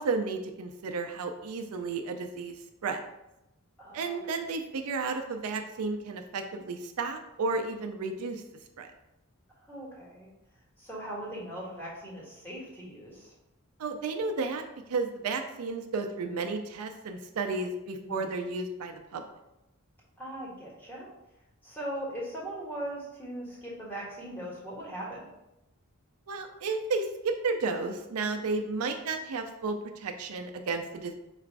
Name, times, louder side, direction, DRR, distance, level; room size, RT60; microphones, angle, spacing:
voice 1, 0.0-2.6 2.8-3.0 3.9-8.4 8.8-8.9 13.8-19.2 26.3-31.1, right 4 dB, 75° right, 6 dB, 0.4 m, -32 dB
voice 2, 3.8-4.2 9.6-10.3 10.8-13.3 18.0-18.3 20.2-21.1 21.6-25.3, right 1 dB, 10° left, -6 dB, 1.2 m, -39 dB
4.0 x 2.5 x 4.6 m, 0.92 s
head